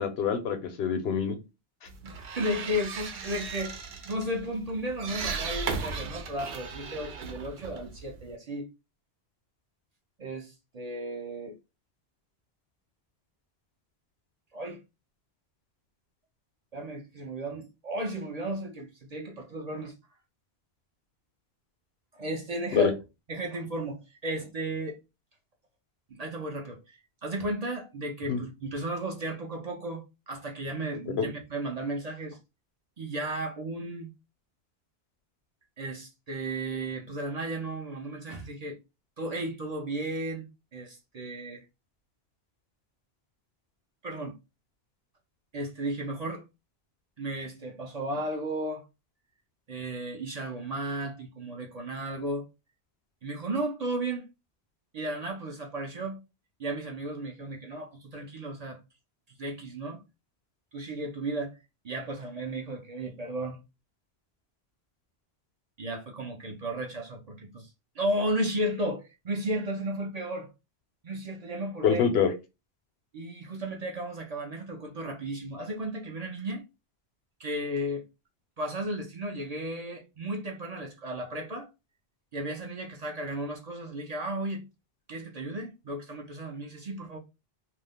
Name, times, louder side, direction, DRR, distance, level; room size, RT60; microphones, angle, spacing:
voice 1, 0.0-1.3 22.7-22.9 28.3-28.4 31.2-31.3 71.8-72.3, left 7 dB, 80° left, 0.9 m, -25 dB
sound 1, 1.9-8.4, right 5 dB, 75° right, 0.8 m, -37 dB
voice 2, 2.0-3.8 4.0-8.7 10.2-11.6 14.5-14.8 16.7-19.9 22.1-22.9 23.3-25.0 26.1-32.4 33.0-34.1 35.8-38.8 39.2-40.4 40.7-41.6 44.0-44.4 45.5-46.4 47.2-48.8 49.7-52.5 53.2-54.2 54.9-56.2 56.6-58.8 59.3-60.0 60.7-61.6 61.8-63.6 65.8-67.7 68.0-70.5 71.0-72.0 73.1-76.6 77.4-78.0 78.6-81.7 82.3-84.6 85.1-87.2, right 1 dB, 50° right, 0.5 m, -34 dB
2.4 x 2.1 x 3.4 m
omnidirectional pair, 1.0 m